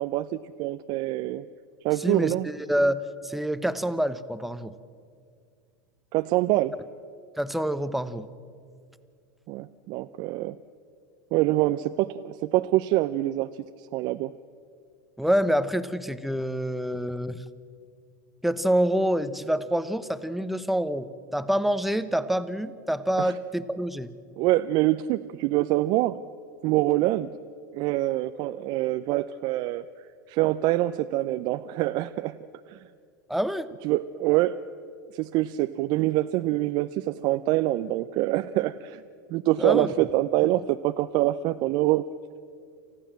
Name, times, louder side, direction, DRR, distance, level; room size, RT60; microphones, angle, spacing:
voice 1, 0.0-1.5 1.8-2.5 6.1-6.8 9.5-10.6 11.3-13.5 13.8-14.3 23.2-23.3 24.4-26.2 26.6-27.3 27.7-29.8 30.3-32.4 32.7-32.8 33.8-34.6 35.1-39.0 39.3-42.1, right 16 dB, 50° right, 10 dB, 0.6 m, -25 dB
voice 2, 2.0-4.7 7.4-8.3 15.2-17.4 18.4-24.1 33.3-33.7 39.6-39.9, equal, ahead, 12 dB, 1.0 m, -27 dB
28.5 x 15.0 x 7.5 m, 2.2 s
hypercardioid pair, 100°, 10 cm